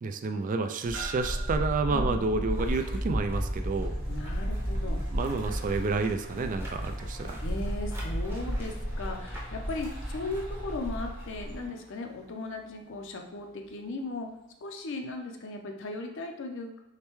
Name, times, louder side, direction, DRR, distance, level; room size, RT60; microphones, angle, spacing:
voice 1, 0.0-4.0 5.1-7.4, right 3 dB, 40° right, 7 dB, 0.3 m, -30 dB
sound 1, 0.9-11.7, equal, 10° right, 0.8 m, -33 dB
sound 2, 0.9-15.2, right 4 dB, 85° right, 1.5 m, -51 dB
sound 3, 3.3-12.8, equal, 70° right, 1.5 m, -50 dB
voice 2, 4.1-5.0 7.4-14.3 14.6-16.8, left 2 dB, 60° left, 3 dB, 0.6 m, -37 dB
6.5 x 2.2 x 3.0 m, 0.92 s
head